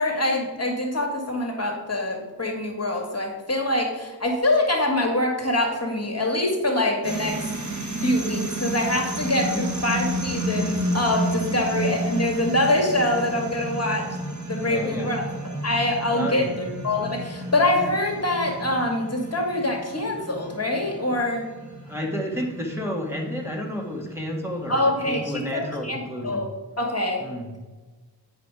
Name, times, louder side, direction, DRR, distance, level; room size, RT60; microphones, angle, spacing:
voice 1, 0.0-7.5 8.0-14.1 14.5-21.5 24.7-26.0 26.2-26.5 26.8-27.2, left 1 dB, 35° left, 1 dB, 1.9 m, -24 dB
sound 1, 7.0-25.5, right 1 dB, 45° right, 1.3 m, -32 dB
voice 2, 14.6-15.1 16.1-16.5 21.9-26.5 27.2-27.6, equal, 5° right, -3 dB, 2.0 m, -31 dB
9.2 x 5.0 x 4.8 m, 1.3 s
cardioid pair, 40°, 42 cm